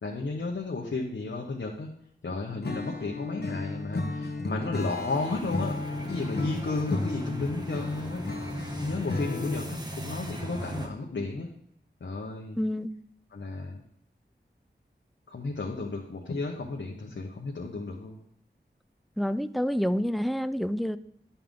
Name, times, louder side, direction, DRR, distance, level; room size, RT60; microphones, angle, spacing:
voice 1, 0.0-1.9 2.2-5.8 6.1-8.2 8.8-11.5 12.0-12.6 13.3-13.8 15.3-18.2, left 3 dB, 75° left, 0 dB, 1.0 m, -33 dB
Acoustic guitar / Strum, 2.6-9.8, left 2 dB, 55° left, 1.1 m, -34 dB
sound 1, 4.8-10.9, equal, 20° right, 1.3 m, -38 dB
voice 2, 12.6-12.9 19.2-21.0, equal, ahead, 13 dB, 0.4 m, -28 dB
10.0 x 5.6 x 3.7 m, 0.70 s
wide cardioid pair, 60°, 20 cm